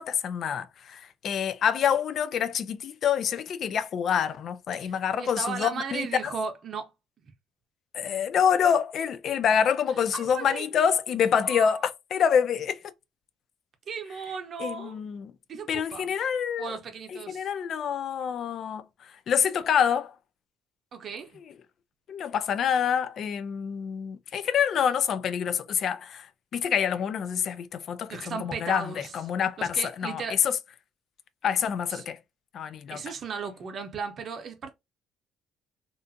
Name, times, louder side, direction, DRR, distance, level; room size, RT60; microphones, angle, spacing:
voice 1, 0.0-6.3 7.9-12.8 14.6-15.3 15.7-16.8 17.1-20.2 22.1-30.6 31.4-32.2 32.5-33.0, left 8 dB, 55° left, 0.3 m, -27 dB
voice 2, 5.2-6.9 7.2-7.3 10.1-10.9 11.5-11.8 13.9-15.0 15.5-16.1 16.6-17.5 20.9-21.4 28.1-29.1 29.6-30.4 31.9-32.0 32.9-34.7, right 5 dB, 50° right, 0.6 m, -36 dB
2.5 x 2.4 x 2.5 m
supercardioid pair, 75°, 0 cm